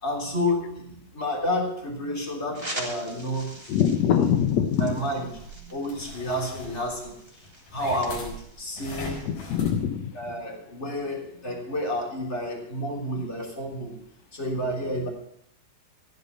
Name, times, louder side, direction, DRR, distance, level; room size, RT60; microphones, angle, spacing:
voice 1, 0.0-3.5 4.1-4.3 4.7-5.3 5.5-7.1 7.7-9.2 10.1-14.0 14.3-15.1, left 1 dB, 20° left, -1 dB, 3.1 m, -30 dB
sound 1, 2.5-9.3, right 1 dB, 10° right, 2.7 m, -43 dB
voice 2, 3.7-4.9 9.2-10.1, left 9 dB, 90° left, 6 dB, 1.5 m, -23 dB
sound 2, 4.8-9.8, left 2 dB, 70° left, 6.1 m, -41 dB
14.5 x 11.0 x 5.3 m, 0.73 s
omnidirectional pair, 4.5 m